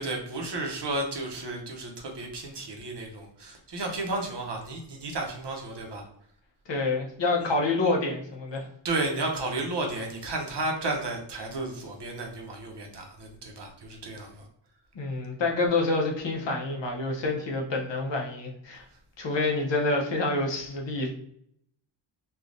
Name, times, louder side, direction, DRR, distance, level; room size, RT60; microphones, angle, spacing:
voice 1, 0.0-6.1 8.8-14.5 18.9-19.0, right 2 dB, 60° right, 1 dB, 0.8 m, -33 dB
voice 2, 6.7-8.7 14.9-18.8 19.2-21.1, left 3 dB, 65° left, 0 dB, 0.8 m, -27 dB
3.3 x 2.3 x 2.5 m, 0.70 s
wide cardioid pair, 120°, 47 cm